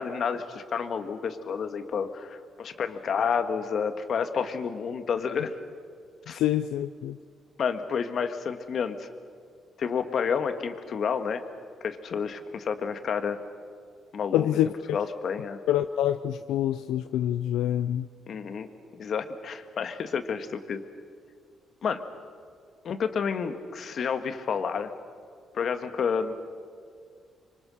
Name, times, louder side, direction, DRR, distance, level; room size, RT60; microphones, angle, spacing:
voice 1, 0.0-5.5 6.3-6.4 7.6-9.1 9.8-11.4 11.8-13.4 14.1-14.6 14.9-15.6 18.3-20.8 21.8-22.0 22.8-24.9 25.5-26.4, left 6 dB, 55° left, 8 dB, 1.7 m, -30 dB
voice 2, 6.4-7.2 14.3-15.0 15.7-18.1, left 11 dB, 90° left, 11 dB, 0.5 m, -26 dB
25.5 x 24.5 x 6.5 m, 2.1 s
cardioid pair, 90°, 0 cm